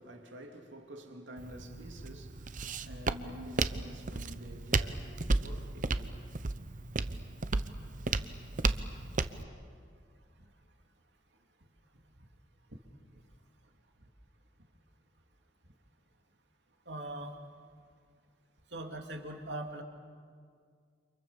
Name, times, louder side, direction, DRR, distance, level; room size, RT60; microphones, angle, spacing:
voice 1, 0.0-6.1, equal, 90° right, 3.0 m, -49 dB
Walk footsteps, 1.4-9.4, right 3 dB, 45° right, 0.9 m, -34 dB
voice 2, 16.9-17.3 18.7-19.8, right 1 dB, 65° right, 3.0 m, -40 dB
29.5 x 28.0 x 7.2 m
head